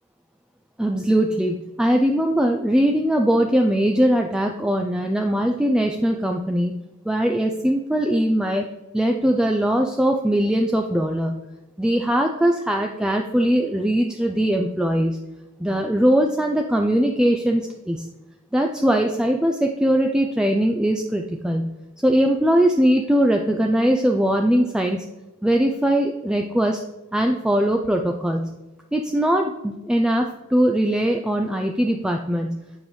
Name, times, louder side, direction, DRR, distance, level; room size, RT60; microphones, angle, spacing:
voice 1, 0.8-6.7 7.0-8.7 8.9-11.4 11.8-15.2 15.6-18.1 18.5-21.7 22.0-25.0 25.4-26.8 27.1-28.6 28.9-32.6, equal, 5° right, 3 dB, 0.3 m, -21 dB
7.5 x 4.9 x 3.0 m, 1.0 s
head